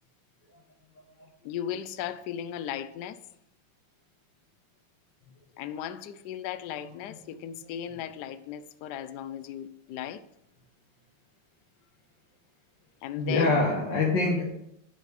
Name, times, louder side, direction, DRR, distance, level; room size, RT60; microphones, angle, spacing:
voice 1, 1.4-3.2 5.6-10.2 13.0-13.5, left 10 dB, 90° left, 0.9 m, -36 dB
voice 2, 13.2-14.4, left 3 dB, 60° left, 1.9 m, -25 dB
9.5 x 5.1 x 4.8 m
omnidirectional pair, 2.4 m